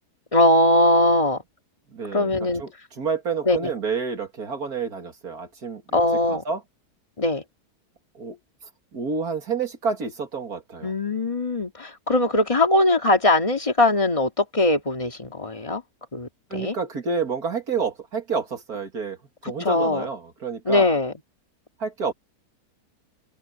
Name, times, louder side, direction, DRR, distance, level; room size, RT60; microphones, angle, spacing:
voice 1, 0.3-1.4 2.1-2.6 3.5-3.6 5.9-6.4 7.2-7.4 10.8-15.8 16.1-16.7 19.6-20.1 20.7-21.1, left 1 dB, 20° left, 2.1 m, -21 dB
voice 2, 1.9-6.6 8.1-8.4 8.9-10.9 16.5-19.2 19.4-21.0 21.8-22.1, right 5 dB, 65° right, 2.8 m, -29 dB
omnidirectional pair, 1.7 m